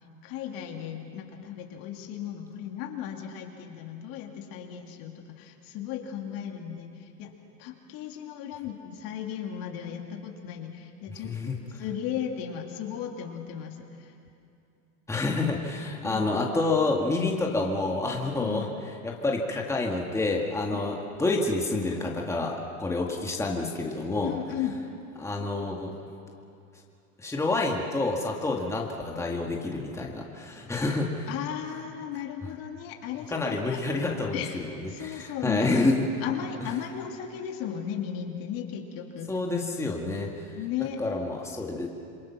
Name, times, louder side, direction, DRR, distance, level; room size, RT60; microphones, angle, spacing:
voice 1, 0.2-7.3 7.6-14.1 16.0-16.2 18.4-18.7 20.7-20.9 24.2-24.7 31.3-33.8 34.3-34.6 34.9-35.7 36.2-39.3 40.6-41.0, left 9 dB, 50° left, 2 dB, 2.7 m, -36 dB
voice 2, 11.2-11.6 15.1-18.7 19.0-24.3 25.2-25.9 27.2-31.3 33.3-36.0 36.6-36.7 39.3-40.6 41.0-41.9, left 2 dB, 5° left, 0 dB, 2.0 m, -28 dB
27.5 x 22.0 x 5.9 m, 2.7 s
supercardioid pair, 120°, 44 cm